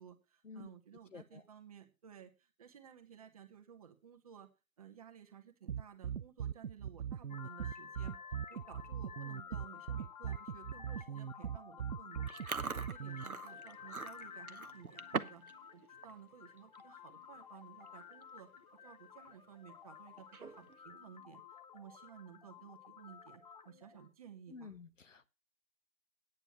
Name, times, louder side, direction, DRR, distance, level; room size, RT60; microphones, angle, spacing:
voice 1, 0.0-4.5 4.8-8.2 8.5-15.4 15.7-18.5 18.8-21.4 21.7-24.8, right 8 dB, 25° right, 1.3 m, -56 dB
voice 2, 1.1-1.4 24.5-25.3, left 5 dB, 65° left, 1.0 m, -51 dB
sound 1, 5.7-13.2, right 8 dB, 65° right, 0.5 m, -40 dB
sound 2, 7.3-24.1, left 7 dB, 30° left, 0.9 m, -53 dB
Chewing mastication, 12.3-15.5 15.8-16.1 16.6-16.8 17.6-17.7 17.9-18.2 18.6-18.7 20.2-20.8, right 5 dB, 85° right, 0.9 m, -42 dB
9.3 x 9.2 x 5.6 m
figure-of-eight pair, 145°, 42 cm